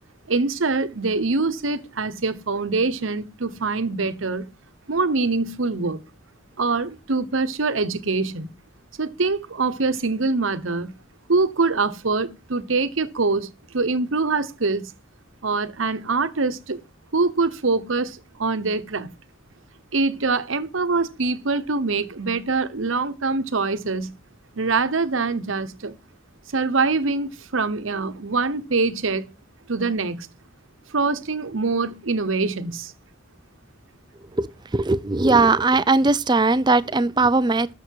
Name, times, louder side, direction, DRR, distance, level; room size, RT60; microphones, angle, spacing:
voice 1, 0.3-4.5 4.9-6.0 6.6-8.5 9.0-10.9 11.3-14.9 15.4-16.8 17.1-19.1 19.9-24.1 24.6-25.9 26.5-29.3 29.7-30.3 30.9-32.9, right 3 dB, 80° right, 1.0 m, -24 dB
voice 2, 34.3-37.7, right 3 dB, 20° right, 0.5 m, -19 dB
12.5 x 6.6 x 4.6 m
head